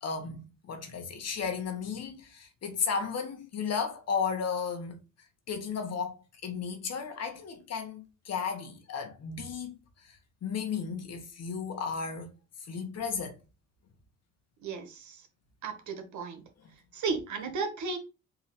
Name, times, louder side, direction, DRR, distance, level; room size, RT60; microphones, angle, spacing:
voice 1, 0.0-5.0 5.5-6.2 6.4-9.7 10.4-12.3 12.7-13.4, left 6 dB, 55° left, 1.3 m, -34 dB
voice 2, 14.6-15.2 15.6-16.4 16.9-18.0, right 4 dB, 75° right, 1.2 m, -34 dB
3.9 x 2.7 x 4.3 m
cardioid pair, 90°, 30 cm